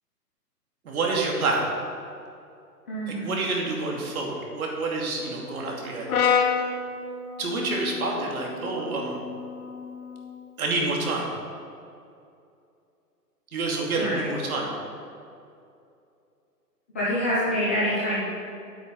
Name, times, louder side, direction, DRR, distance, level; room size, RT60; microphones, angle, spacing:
voice 1, 0.8-1.6 3.1-6.1 6.5-6.7 7.4-9.2 10.6-11.3 13.5-14.7, right 3 dB, 60° right, -1 dB, 2.7 m, -28 dB
voice 2, 2.9-3.3 14.0-14.4 16.9-18.2, equal, 10° left, -10 dB, 0.5 m, -26 dB
Brass instrument, 6.1-10.3, left 6 dB, 60° left, 1.2 m, -29 dB
9.2 x 8.4 x 5.3 m, 2.5 s
hypercardioid pair, 145°, 49 cm